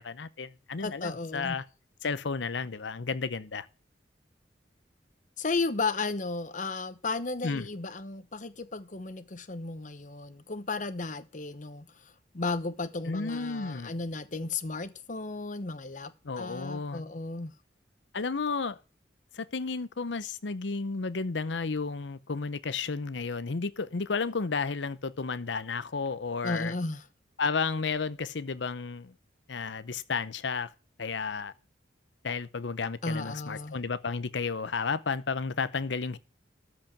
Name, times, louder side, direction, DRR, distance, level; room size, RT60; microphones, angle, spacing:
voice 1, 0.0-1.6 2.0-3.7 7.4-7.7 13.0-13.9 16.2-17.0 18.1-18.8 19.3-26.7 27.4-29.1 29.5-30.7 31.0-31.5 32.2-36.2, left 4 dB, 75° left, 0.7 m, -32 dB
voice 2, 0.8-1.6 5.4-17.5 26.4-27.0 33.0-33.8, left 3 dB, 45° left, 0.9 m, -34 dB
13.0 x 5.0 x 7.2 m
head